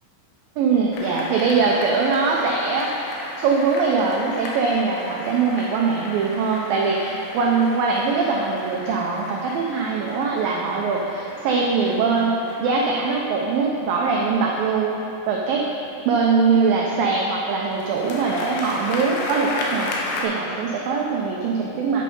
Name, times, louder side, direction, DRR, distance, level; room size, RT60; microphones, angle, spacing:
voice 1, 0.6-2.9 3.4-15.0 15.3-15.6 16.1-22.0, right 4 dB, 85° right, -1 dB, 2.0 m, -22 dB
sound 1, 0.9-15.0 17.7-20.2, left 2 dB, 90° left, 3.5 m, -35 dB
9.7 x 8.4 x 5.3 m, 3.0 s
omnidirectional pair, 5.1 m